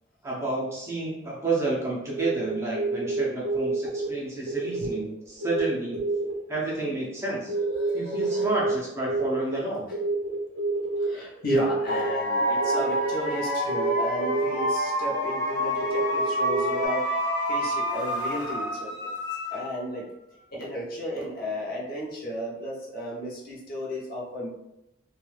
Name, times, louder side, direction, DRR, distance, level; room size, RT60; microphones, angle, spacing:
voice 1, 0.2-6.0 6.5-7.5 7.9-9.9, right 2 dB, 15° right, -5 dB, 0.6 m, -30 dB
sound 1, 2.1-4.1 4.5-5.0 5.4-6.4 7.5-8.7 9.1-11.1 11.4-12.1 12.6-13.1 13.7-14.7 15.3-16.9, right 2 dB, 90° right, 0.5 m, -28 dB
voice 2, 7.5-8.6 9.1-9.2 11.0-18.9 19.5-20.1 20.5-24.5, equal, 50° left, -4 dB, 0.7 m, -34 dB
sound 2, 11.8-19.9, equal, 65° left, 1.2 m, -28 dB
2.4 x 2.3 x 3.2 m, 0.84 s
head